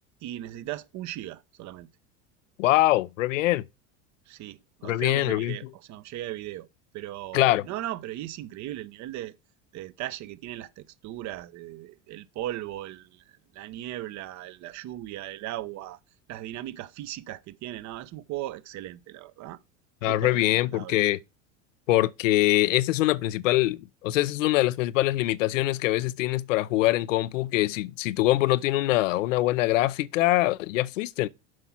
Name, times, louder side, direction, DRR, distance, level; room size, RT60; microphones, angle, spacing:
voice 1, 0.2-1.9 4.3-6.7 6.9-9.3 9.7-16.0 16.3-19.6 20.0-21.0, right 14 dB, 50° right, 0.8 m, -38 dB
voice 2, 2.6-3.6 4.8-5.6 7.3-7.7 20.0-21.2 21.9-31.3, left 17 dB, 90° left, 0.6 m, -23 dB
7.7 x 4.6 x 5.8 m
supercardioid pair, 100°, 37 cm